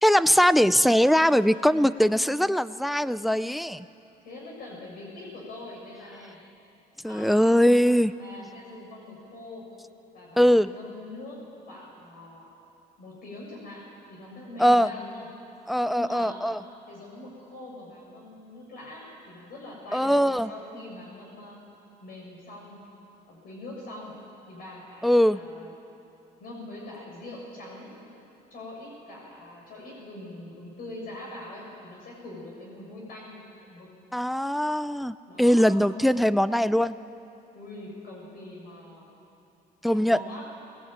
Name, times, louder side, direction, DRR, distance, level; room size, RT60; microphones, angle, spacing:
voice 1, 0.0-3.9 7.0-8.1 10.4-10.7 14.6-14.9 15.7-16.6 19.9-20.5 25.0-25.4 34.1-36.9 39.8-40.2, equal, ahead, 15 dB, 0.5 m, -21 dB
voice 2, 4.2-6.4 7.0-7.6 8.2-9.6 10.1-11.4 11.7-12.5 13.0-13.8 14.1-15.3 15.9-16.5 16.9-21.6 22.0-22.8 23.3-24.1 24.5-25.7 26.4-28.1 28.5-33.4 33.7-33.9 35.3-35.8 37.5-39.1 39.9-40.4, left 2 dB, 60° left, -2 dB, 6.5 m, -43 dB
22.5 x 18.5 x 9.0 m, 2.8 s
cardioid pair, 110°, 17 cm